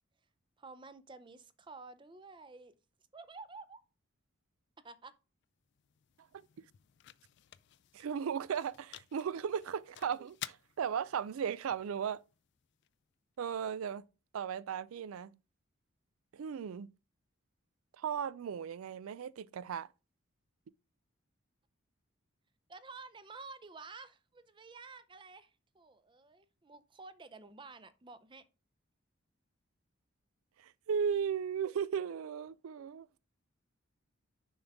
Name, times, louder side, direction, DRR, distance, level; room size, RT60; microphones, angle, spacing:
voice 1, 0.6-2.7 3.1-3.8 4.8-5.1 22.7-28.4, right 3 dB, 25° right, 0.5 m, -51 dB
sound 1, 5.4-13.5, left 13 dB, 55° left, 0.3 m, -53 dB
voice 2, 7.9-12.2 13.4-14.1 14.3-15.4 16.3-16.9 18.0-19.9 30.6-33.2, right 7 dB, 80° right, 0.4 m, -36 dB
7.0 x 5.4 x 3.5 m
head